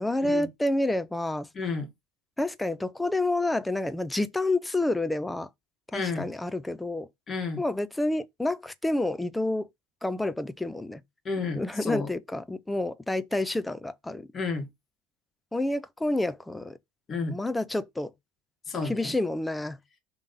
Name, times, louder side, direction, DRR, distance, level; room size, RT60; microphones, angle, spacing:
voice 1, 0.0-1.5 2.4-5.5 5.9-7.1 7.6-9.7 10.0-11.0 11.5-14.3 15.5-16.8 17.3-18.1 18.8-19.8, left 2 dB, 5° left, 0.6 m, -29 dB
voice 2, 1.6-1.9 5.9-6.3 7.3-7.6 11.3-12.1 14.3-14.7 17.1-17.4 18.7-19.1, left 4 dB, 25° left, 1.8 m, -31 dB
5.6 x 3.5 x 5.4 m
supercardioid pair, 130°, 0 cm